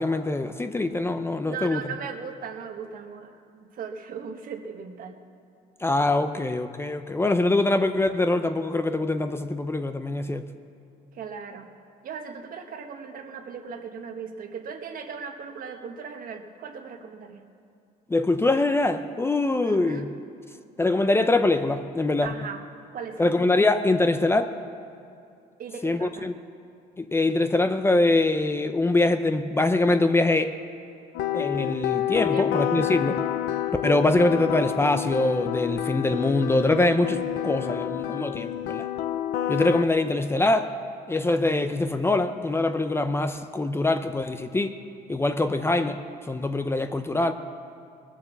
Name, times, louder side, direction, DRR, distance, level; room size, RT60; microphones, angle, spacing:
voice 1, 0.0-1.8 5.8-10.4 18.1-20.1 20.8-22.3 23.2-24.5 25.8-26.3 27.0-30.5 31.3-33.2 33.8-38.9 39.5-40.7 41.1-44.7 45.1-46.0 46.3-47.3, left 2 dB, 15° left, 9 dB, 0.6 m, -23 dB
voice 2, 1.4-5.2 6.3-6.4 11.1-11.7 12.0-17.4 19.6-20.1 22.2-22.6 22.9-23.4 25.6-26.3 32.3-32.6, right 6 dB, 55° right, 5 dB, 1.4 m, -38 dB
sound 1, 31.1-39.8, left 11 dB, 80° left, 0.7 m, -28 dB
20.5 x 7.2 x 7.2 m, 2.5 s
cardioid pair, 110°, 17 cm